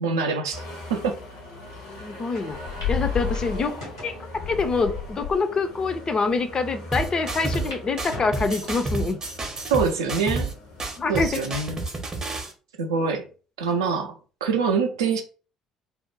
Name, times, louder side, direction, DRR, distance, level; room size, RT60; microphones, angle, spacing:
voice 1, 0.0-0.6 0.9-1.2 9.7-10.5 11.1-11.8 12.8-13.2 13.6-15.2, right 5 dB, 75° right, 0.4 m, -24 dB
sound 1, 0.5-11.5, left 5 dB, 70° left, 0.7 m, -36 dB
voice 2, 2.0-2.6 2.9-3.7 4.0-4.1 4.5-9.2 11.0-11.4, left 4 dB, 30° left, 0.4 m, -25 dB
sound 2, 2.3-2.4 2.8-2.9 3.3-4.2 4.9-5.0 5.7-5.8 6.1-6.2 7.4-7.8 8.1-8.9 9.4-9.8 10.4-10.5 11.6-12.0, left 1 dB, 85° left, 1.1 m, -41 dB
sound 3, 6.9-7.7 8.0-10.5 10.8-12.5, right 3 dB, 30° right, 0.6 m, -30 dB
2.4 x 2.0 x 3.1 m
figure-of-eight pair, 50°, 2 cm